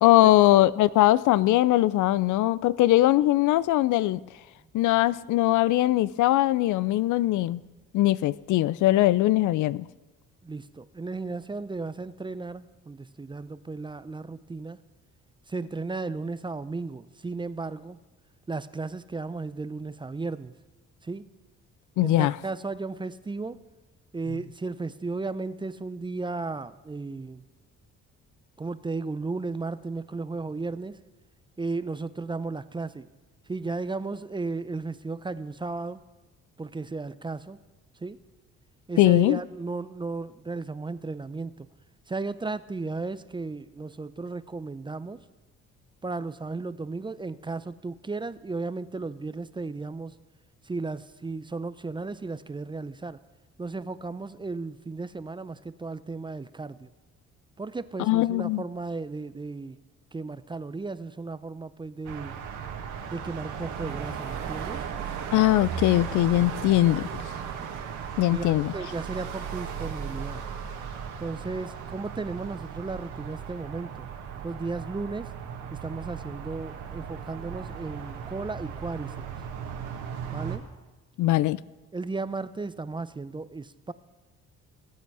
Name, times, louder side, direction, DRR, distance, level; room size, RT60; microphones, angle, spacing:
voice 1, 0.0-4.2 4.7-7.6 7.9-9.9 22.0-22.3 39.0-39.4 58.1-58.6 65.3-67.1 68.2-68.7 81.2-81.6, left 15 dB, 80° left, 19 dB, 0.4 m, -21 dB
voice 2, 10.4-14.8 15.5-18.0 18.5-20.5 21.0-21.2 22.0-23.6 24.1-27.4 28.6-31.0 31.6-33.1 33.5-36.0 36.6-37.6 38.0-38.2 38.9-41.7 42.1-45.2 46.0-50.2 50.6-53.2 53.6-56.9 57.6-59.8 60.1-62.4 63.1-64.8 68.3-68.4 68.7-70.4 71.2-74.1 74.4-75.3 75.7-79.3 80.3-80.6 81.9-83.9, right 3 dB, 15° right, 14 dB, 0.5 m, -35 dB
sound 1, 62.0-80.6, right 7 dB, 85° right, 1.8 m, -36 dB
20.0 x 8.5 x 4.8 m, 1.2 s
cardioid pair, 90°, 30 cm